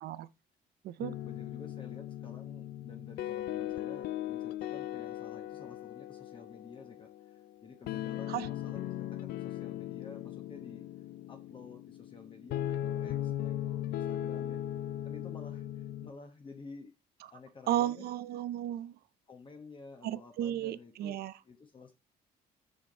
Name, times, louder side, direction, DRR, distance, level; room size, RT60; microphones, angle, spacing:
sound 1, 1.0-16.1, left 12 dB, 70° left, 0.4 m, -38 dB
voice 1, 1.2-10.9 11.3-14.6 15.0-17.0 17.3-18.1 19.3-21.9, left 4 dB, 30° left, 1.0 m, -51 dB
voice 2, 17.7-18.9 20.0-21.3, right 12 dB, 65° right, 0.5 m, -34 dB
6.3 x 5.2 x 3.9 m
cardioid pair, 110°, 17 cm